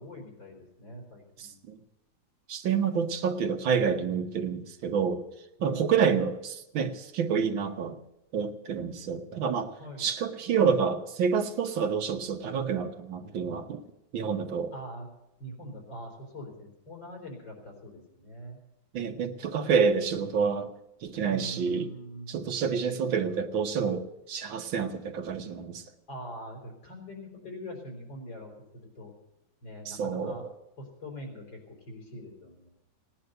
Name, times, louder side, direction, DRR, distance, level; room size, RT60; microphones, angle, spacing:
voice 1, 0.0-1.6 5.6-6.0 9.8-10.1 14.7-15.1 15.4-18.6 21.3-22.4 26.1-29.1 29.6-30.4 30.8-32.7, equal, 70° left, 1 dB, 4.9 m, -43 dB
voice 2, 2.5-5.2 5.6-8.0 8.3-9.7 10.0-13.8 14.1-14.7 18.9-20.7 21.0-21.9 22.3-25.8 29.9-30.4, right 6 dB, 85° right, 7 dB, 1.9 m, -28 dB
17.5 x 10.0 x 7.9 m, 0.89 s
omnidirectional pair, 2.1 m